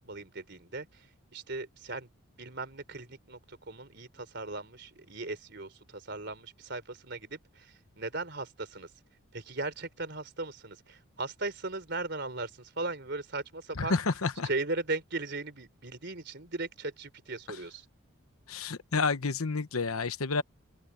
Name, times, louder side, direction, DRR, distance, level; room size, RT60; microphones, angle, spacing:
voice 1, 0.0-2.1 2.4-8.9 9.3-13.9 14.4-17.9, right 3 dB, 50° right, 4.0 m, -38 dB
voice 2, 13.8-14.5 18.5-20.4, left 4 dB, 80° left, 1.1 m, -29 dB
open air
head